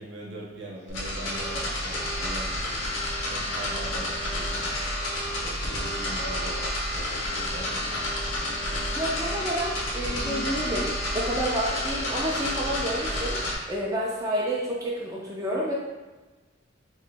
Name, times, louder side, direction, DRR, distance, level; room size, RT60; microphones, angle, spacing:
voice 1, 0.0-2.9 3.3-4.6 5.4-7.1 7.3-8.1, right 1 dB, 70° right, -3 dB, 0.8 m, -41 dB
sound 1, 0.7-2.4 2.8-2.9 3.9-10.7, left 2 dB, 65° left, 0.4 m, -45 dB
sound 2, 0.9-13.6, left 1 dB, 90° left, 0.8 m, -30 dB
voice 2, 8.9-13.4 13.7-15.7, equal, 20° right, -5 dB, 0.4 m, -29 dB
3.0 x 2.8 x 3.3 m, 1.2 s
head